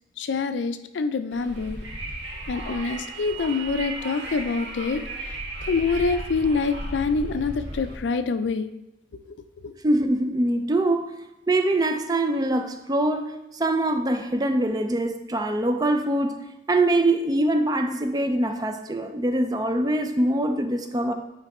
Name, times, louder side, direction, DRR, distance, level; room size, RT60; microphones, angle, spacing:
voice 1, 0.2-1.8 2.5-5.0 5.7-8.7 9.6-9.8, left 4 dB, 80° left, 10 dB, 0.4 m, -26 dB
Wind, 1.3-8.0, right 1 dB, 90° right, 1.5 m, -35 dB
voice 2, 9.8-11.1 11.5-16.4 16.7-21.1, right 1 dB, 20° right, 7 dB, 0.4 m, -23 dB
9.0 x 3.3 x 4.2 m, 0.92 s
head